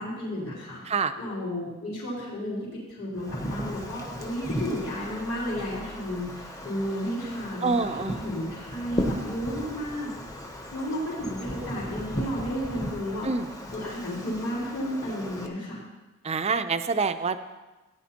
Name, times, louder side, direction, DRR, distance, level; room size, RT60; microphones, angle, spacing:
voice 1, 0.0-0.8 1.2-10.1 10.7-13.3 13.7-15.8, equal, 60° left, -12 dB, 3.8 m, -32 dB
Wind, 3.1-15.5, equal, 15° left, 0.8 m, -36 dB
voice 2, 7.6-8.2 13.2-13.5 16.2-17.4, right 4 dB, 30° right, 10 dB, 0.4 m, -26 dB
16.0 x 9.8 x 2.9 m, 1.2 s
head